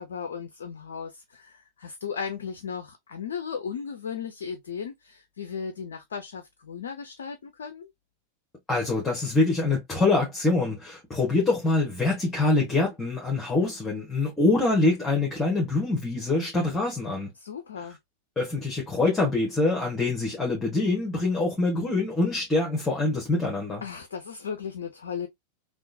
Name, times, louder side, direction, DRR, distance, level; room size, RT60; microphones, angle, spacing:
voice 1, 0.0-7.9 17.4-18.0 23.8-25.3, left 6 dB, 65° left, 0.5 m, -36 dB
voice 2, 8.7-17.3 18.4-23.8, left 2 dB, 15° left, 1.3 m, -25 dB
3.6 x 2.5 x 2.6 m
figure-of-eight pair, 90°, 0 cm